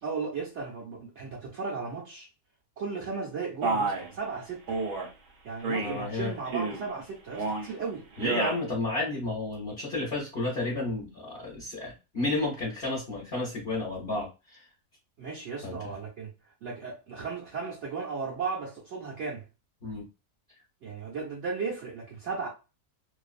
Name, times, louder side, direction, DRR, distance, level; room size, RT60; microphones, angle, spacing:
voice 1, 0.0-2.3 2.8-4.8 5.4-8.0 15.2-16.3 16.6-19.4 20.8-22.5, right 4 dB, 60° right, 0.8 m, -35 dB
Male speech man speaking, 3.6-4.1 4.7-5.1 5.6-6.0 6.4-6.9 7.3-7.7 8.1-8.6, right 3 dB, 80° right, 1.2 m, -30 dB
voice 2, 5.8-6.3 8.2-14.6 15.6-15.9 19.8-20.0, left 2 dB, 45° left, 0.9 m, -32 dB
2.6 x 2.3 x 2.4 m
omnidirectional pair, 1.6 m